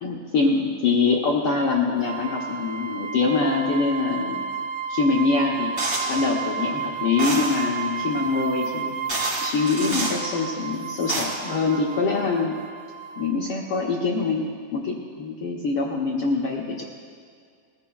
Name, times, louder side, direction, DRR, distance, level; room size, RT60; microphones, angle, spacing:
voice 1, 0.0-4.4 4.9-5.7 6.1-8.9 9.4-12.6 13.2-16.8, left 4 dB, 80° left, -2 dB, 1.2 m, -24 dB
sound 1, 2.1-13.5, right 6 dB, 80° right, 1.8 m, -32 dB
sound 2, 5.8-6.2 7.2-7.6 8.6-8.7 9.1-10.2 10.8-11.2, right 2 dB, 20° right, 3.3 m, -29 dB
20.5 x 15.5 x 2.3 m, 2.2 s
omnidirectional pair, 3.8 m